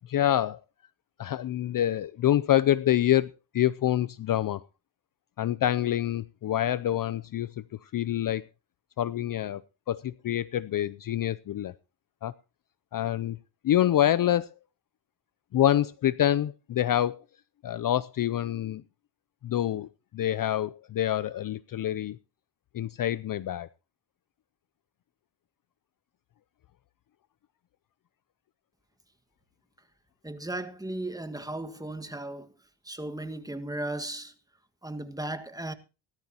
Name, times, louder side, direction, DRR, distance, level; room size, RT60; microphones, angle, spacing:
voice 1, 0.1-0.6 1.2-3.3 3.5-4.6 5.4-8.5 9.0-9.6 9.9-11.7 12.2-12.3 12.9-13.4 13.6-14.5 15.5-17.2 17.6-18.8 19.4-19.9 20.1-22.2 22.7-23.7, left 12 dB, 45° left, 0.6 m, -26 dB
voice 2, 30.2-32.5 32.8-34.3 34.8-35.7, right 1 dB, 10° right, 1.6 m, -36 dB
18.0 x 13.0 x 2.9 m
cardioid pair, 85°, 48 cm